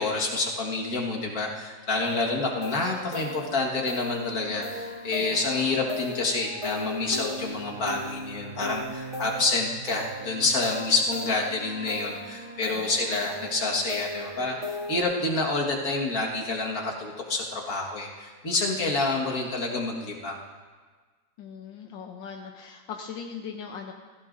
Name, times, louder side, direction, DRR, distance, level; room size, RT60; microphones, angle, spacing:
voice 1, 0.0-20.5, left 3 dB, 50° left, -2 dB, 2.1 m, -28 dB
sound 1, 2.0-15.0, left 1 dB, 15° right, 3.1 m, -37 dB
voice 2, 21.4-23.9, left 6 dB, 80° left, 3 dB, 1.5 m, -40 dB
16.5 x 15.5 x 2.6 m, 1.4 s
omnidirectional pair, 2.0 m